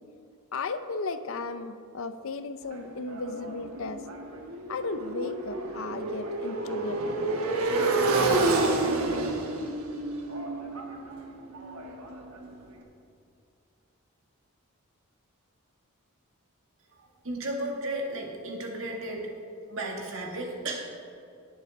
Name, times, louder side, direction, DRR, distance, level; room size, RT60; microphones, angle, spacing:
voice 1, 0.5-4.0 4.7-7.4, left 3 dB, 70° left, 11 dB, 0.6 m, -35 dB
Motorcycle, 2.7-12.5, right 2 dB, 85° right, 1.2 m, -29 dB
voice 2, 16.9-19.3 19.7-21.0, right 1 dB, 65° right, 0 dB, 1.8 m, -34 dB
18.5 x 7.3 x 3.5 m, 2.5 s
head